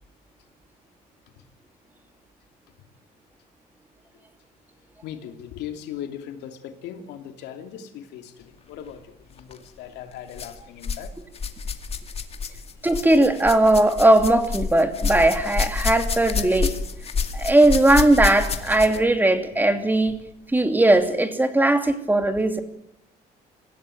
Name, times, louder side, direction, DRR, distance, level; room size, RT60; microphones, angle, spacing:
voice 1, 5.0-11.1, left 9 dB, 85° left, 7 dB, 2.8 m, -38 dB
sound 1, 9.4-9.6 10.3-11.1 11.3-19.1 20.1-20.2 21.0-21.1, left 5 dB, 35° left, 2.2 m, -29 dB
voice 2, 12.8-16.7 17.3-20.2 20.5-22.6, right 1 dB, 10° right, 8 dB, 2.8 m, -18 dB
25.5 x 16.0 x 9.2 m, 0.78 s
cardioid pair, 110°, 17 cm